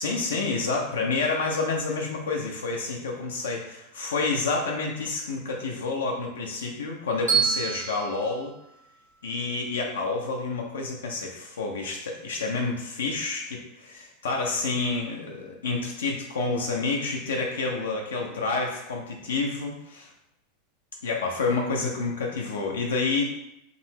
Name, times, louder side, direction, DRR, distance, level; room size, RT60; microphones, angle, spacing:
voice 1, 0.0-8.5 9.2-20.1 21.0-23.2, left 3 dB, 85° left, 0 dB, 0.5 m, -29 dB
Bell, 7.3-9.5, right 6 dB, 85° right, 1.3 m, -29 dB
3.7 x 2.0 x 2.8 m, 0.81 s
hypercardioid pair, 100°, 0 cm